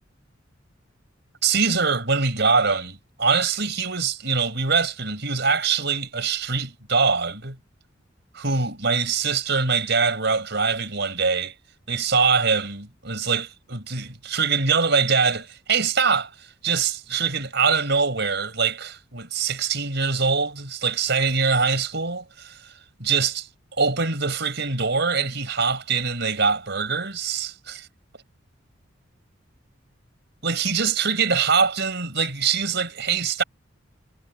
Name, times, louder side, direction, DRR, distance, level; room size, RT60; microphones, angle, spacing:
voice 1, 1.4-7.6 8.3-11.5 11.9-22.7 23.0-23.5 23.8-27.9 30.4-33.4, right 5 dB, 60° right, 5.3 m, -23 dB
head